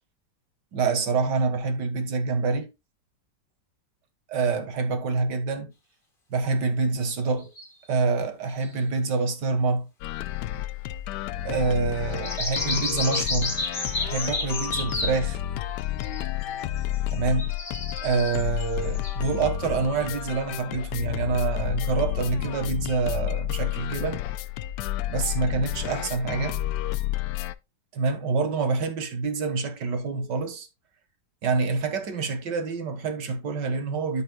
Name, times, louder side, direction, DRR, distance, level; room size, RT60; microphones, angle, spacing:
voice 1, 0.7-2.7 4.3-5.7 6.3-7.5 7.9-9.9 11.4-13.6 14.0-15.4 17.1-17.6 18.0-24.2 25.1-26.6 27.9-30.7 31.4-34.2, right 4 dB, 75° right, 2.0 m, -26 dB
sound 1, 7.4-7.7 8.6-8.7 12.1-15.2 16.0-16.4 16.8-19.4, left 2 dB, 30° left, 2.1 m, -31 dB
sound 2, 10.0-27.5, left 13 dB, 75° left, 1.2 m, -30 dB
13.5 x 5.3 x 2.3 m
omnidirectional pair, 1.9 m